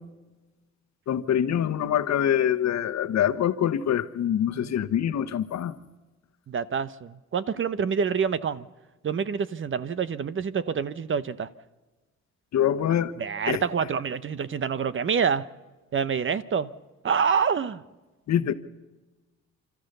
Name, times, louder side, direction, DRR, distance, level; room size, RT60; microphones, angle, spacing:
voice 1, 1.1-5.7 12.5-13.1 13.5-13.6 18.3-18.5, left 10 dB, 65° left, 1.2 m, -24 dB
voice 2, 6.5-8.7 9.0-11.5 13.2-15.4 15.9-16.7 17.0-17.8 18.4-18.5, right 6 dB, 40° right, 0.9 m, -27 dB
30.0 x 13.5 x 6.8 m
cardioid pair, 90°, 30 cm